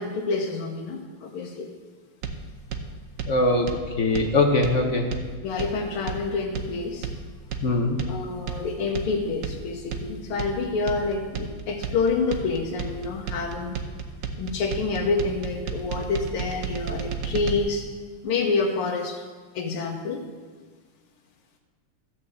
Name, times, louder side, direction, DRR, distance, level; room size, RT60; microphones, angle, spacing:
voice 1, 0.0-1.7 5.4-7.1 8.1-13.8 14.4-17.9 18.2-19.2 19.6-20.2, left 4 dB, 75° left, 0 dB, 1.9 m, -28 dB
sound 1, 2.2-17.6, right 5 dB, 60° right, 0.9 m, -33 dB
voice 2, 3.2-3.7 4.0-5.1 7.6-8.0, left 2 dB, 45° left, 2 dB, 1.0 m, -21 dB
13.5 x 5.9 x 7.8 m, 1.4 s
omnidirectional pair, 2.4 m